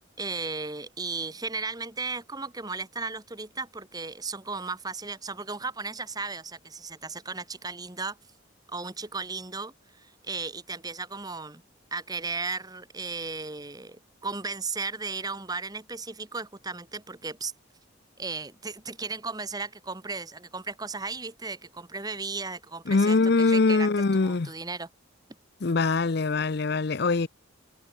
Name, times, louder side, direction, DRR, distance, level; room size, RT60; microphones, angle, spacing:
voice 1, 0.2-8.2 8.7-11.6 11.9-17.5 18.2-23.9 24.2-24.9, right 4 dB, 20° right, 1.4 m, -35 dB
voice 2, 22.9-24.5 25.6-27.3, left 3 dB, 50° left, 0.6 m, -23 dB
head